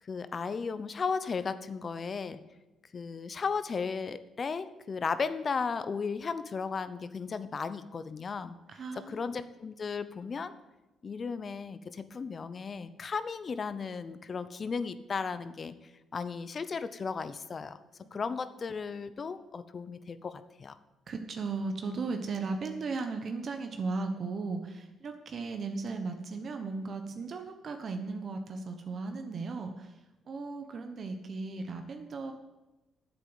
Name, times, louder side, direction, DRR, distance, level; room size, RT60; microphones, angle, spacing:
voice 1, 0.1-2.4 2.9-8.5 9.0-10.5 11.0-15.7 16.1-17.8 18.1-20.8, left 5 dB, 40° left, 13 dB, 0.8 m, -35 dB
voice 2, 8.7-9.3 18.0-18.2 21.1-30.0 30.3-32.3, right 4 dB, 50° right, 6 dB, 1.1 m, -36 dB
9.4 x 7.9 x 8.1 m, 1.0 s
cardioid pair, 90°, 0 cm